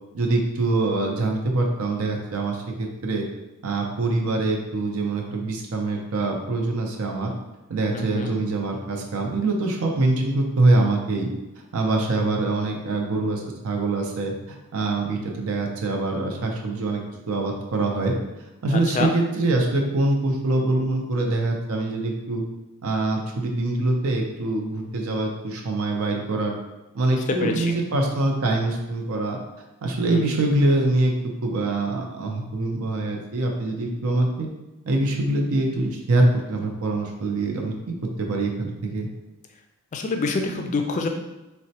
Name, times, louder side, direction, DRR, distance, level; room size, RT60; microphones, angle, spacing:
voice 1, 0.1-3.3 3.6-7.3 7.7-11.3 11.7-17.0 17.3-18.2 18.6-22.4 22.8-26.6 26.9-29.4 29.8-31.1 31.4-34.5 34.9-39.1, right 2 dB, 80° right, 1 dB, 0.5 m, -24 dB
voice 2, 7.9-8.4 18.7-19.1 27.1-27.7 30.1-30.3 39.9-41.1, left 3 dB, 35° left, 4 dB, 0.3 m, -27 dB
4.0 x 2.1 x 2.7 m, 1.0 s
head